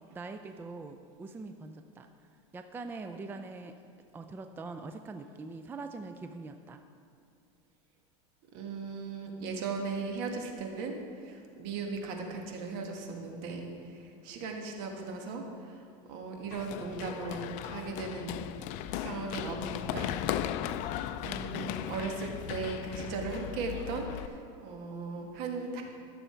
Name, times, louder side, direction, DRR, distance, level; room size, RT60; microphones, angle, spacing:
voice 1, 0.1-2.1 2.5-3.8 4.1-6.8, right 3 dB, 15° right, 7 dB, 0.4 m, -43 dB
voice 2, 8.5-18.4 18.9-20.5 21.2-25.8, right 4 dB, 60° right, 2 dB, 1.7 m, -38 dB
Run, 16.5-24.3, left 11 dB, 50° left, 0.5 m, -37 dB
14.5 x 6.9 x 4.5 m, 2.3 s
supercardioid pair, 130°, 16 cm